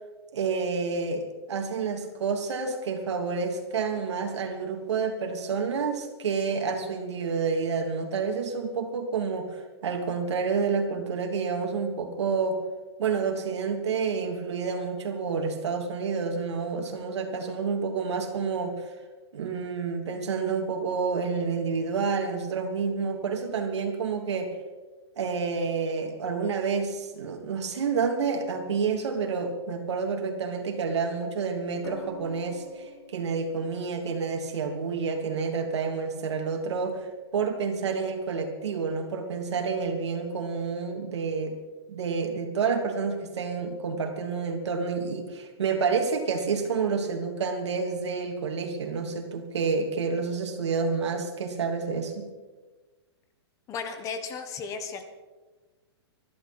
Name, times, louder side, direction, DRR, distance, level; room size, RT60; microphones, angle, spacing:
voice 1, 0.3-12.6 13.0-18.9 19.3-24.5 25.2-37.1 37.3-41.6 41.9-52.3, right 5 dB, 80° right, 3 dB, 3.1 m, -29 dB
sound 1, 31.8-36.0 37.7-38.0, left 2 dB, 65° left, 4.7 m, -47 dB
voice 2, 53.7-55.0, left 5 dB, 20° left, 8 dB, 1.3 m, -35 dB
25.5 x 12.0 x 4.4 m, 1.3 s
hypercardioid pair, 155°, 14 cm